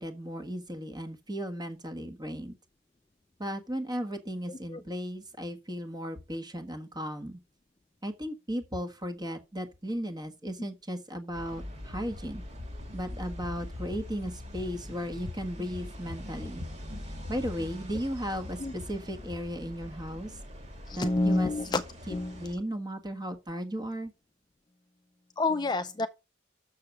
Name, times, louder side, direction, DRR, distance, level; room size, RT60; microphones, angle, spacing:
voice 1, 0.0-2.5 3.4-7.4 8.0-12.4 12.9-16.7 17.3-20.3 20.9-21.5 22.1-24.1, equal, 20° right, 1.5 m, -36 dB
sound 1, 11.3-22.5, left 1 dB, 35° right, 2.2 m, -42 dB
voice 2, 20.9-21.8 22.1-22.3 25.4-26.1, left 2 dB, 20° left, 0.5 m, -28 dB
6.7 x 6.6 x 5.8 m
head